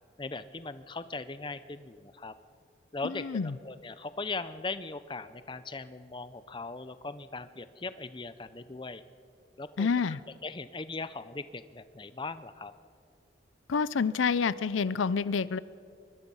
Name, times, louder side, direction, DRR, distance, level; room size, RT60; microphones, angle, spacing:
voice 1, 0.2-2.3 2.9-9.0 9.6-10.2 10.4-12.7, left 3 dB, 25° left, 13 dB, 0.6 m, -39 dB
voice 2, 3.0-3.5 9.8-10.2 13.7-15.6, left 5 dB, 85° left, 18 dB, 0.5 m, -28 dB
24.0 x 21.5 x 5.5 m, 2.5 s
head